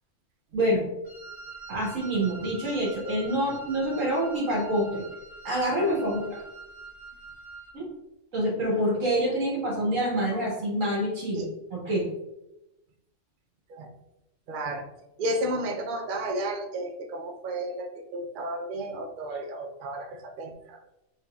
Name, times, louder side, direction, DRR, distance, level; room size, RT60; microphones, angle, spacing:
voice 1, 0.5-0.8 1.7-5.0 5.4-6.4 7.7-7.9 8.3-11.4 11.7-12.0, right 1 dB, 80° right, -4 dB, 1.8 m, -26 dB
Wind instrument woodwind instrument, 1.0-7.8, right 4 dB, ahead, 1.0 m, -45 dB
voice 2, 14.5-14.9 15.2-20.8, right 1 dB, 60° right, 4 dB, 0.5 m, -32 dB
4.0 x 3.5 x 2.3 m, 0.91 s
omnidirectional pair, 1.3 m